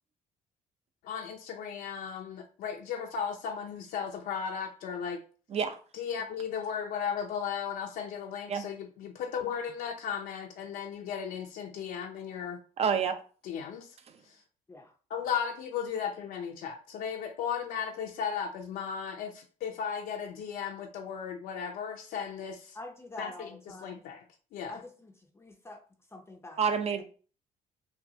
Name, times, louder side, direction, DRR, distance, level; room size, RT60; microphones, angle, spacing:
voice 1, 1.0-5.2 5.9-12.6 13.4-14.0 14.2-14.4 15.1-22.8 23.2-23.5 23.8-24.2 24.5-24.8, left 7 dB, 75° left, 0.5 m, -36 dB
voice 2, 5.5-5.8 8.5-8.7 12.8-13.2 26.6-27.0, right 6 dB, 45° right, 0.6 m, -28 dB
voice 3, 22.7-24.0 24.7-25.8 26.1-27.0, left 2 dB, 15° left, 0.5 m, -46 dB
5.6 x 2.3 x 2.7 m
cardioid pair, 115°, 15 cm